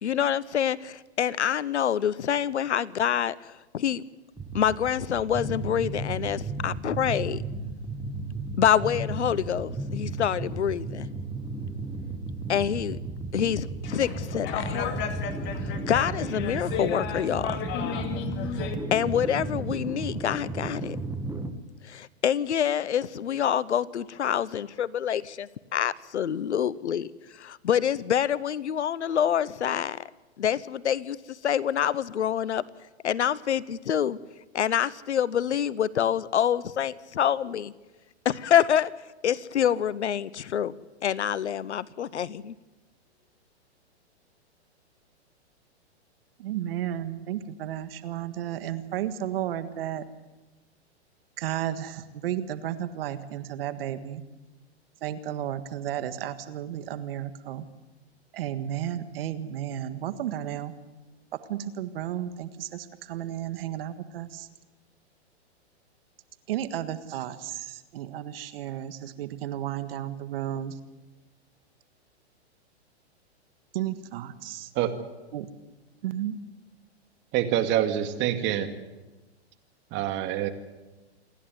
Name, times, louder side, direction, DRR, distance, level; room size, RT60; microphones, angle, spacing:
voice 1, 0.0-4.0 4.5-7.4 8.6-11.1 12.5-13.0 13.3-14.8 15.6-17.6 18.5-18.7 18.9-21.0 21.8-30.0 30.4-32.6 33.0-34.2 34.5-37.7 38.2-38.9 39.2-40.7 41.0-42.5, left 9 dB, 85° left, 20 dB, 0.9 m, -26 dB
sound 1, 4.4-21.5, right 3 dB, 10° right, 1.5 m, -34 dB
sound 2, 13.8-18.7, left 7 dB, 35° left, 2.4 m, -33 dB
voice 2, 46.4-50.0 51.4-54.2 55.0-57.6 58.3-60.7 61.5-64.5 66.5-70.8 73.7-74.7 75.3-75.5 76.0-76.4, right 11 dB, 60° right, 11 dB, 1.7 m, -33 dB
voice 3, 77.3-78.7 79.9-80.5, right 11 dB, 35° right, 7 dB, 2.2 m, -26 dB
27.5 x 11.0 x 9.5 m, 1.1 s
hypercardioid pair, 125°, 34 cm